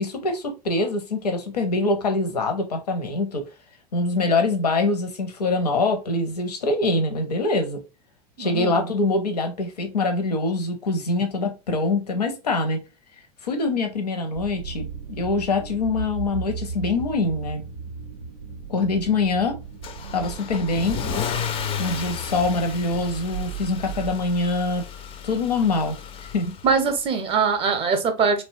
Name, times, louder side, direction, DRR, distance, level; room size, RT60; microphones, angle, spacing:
voice 1, 0.0-3.5 3.9-7.8 8.4-12.8 13.4-14.9 15.2-17.6 18.7-19.6 20.1-21.0 21.8-24.8 25.2-26.5, left 3 dB, 80° left, 0.6 m, -24 dB
voice 2, 8.4-8.9 26.6-28.4, right 5 dB, 30° right, 0.5 m, -22 dB
sound 1, 14.3-24.2, right 7 dB, 90° right, 0.5 m, -36 dB
Car / Engine starting / Accelerating revving vroom, 19.8-26.9, left 8 dB, 25° left, 0.3 m, -33 dB
2.7 x 2.2 x 2.5 m
figure-of-eight pair, 85°, 20 cm